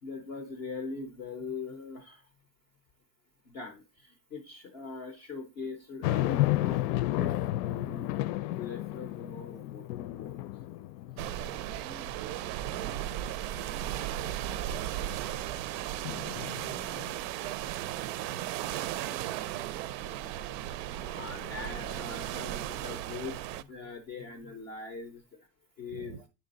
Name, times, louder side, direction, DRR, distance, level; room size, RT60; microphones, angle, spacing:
voice 1, 0.0-2.3 3.4-6.9 7.1-8.1 8.5-11.3 15.2-15.3 21.0-25.5 25.8-26.2, left 4 dB, 25° left, 0.3 m, -42 dB
sound 1, 6.0-11.6 12.1-12.2 16.0-17.1, left 16 dB, 85° left, 0.5 m, -32 dB
sound 2, 11.2-23.6, right 12 dB, 90° right, 0.6 m, -36 dB
voice 2, 11.6-12.5 12.7-16.9 17.2-18.4 19.0-20.8 25.9-26.3, right 10 dB, 40° right, 0.4 m, -47 dB
9.4 x 3.7 x 3.9 m
cardioid pair, 175°, 48 cm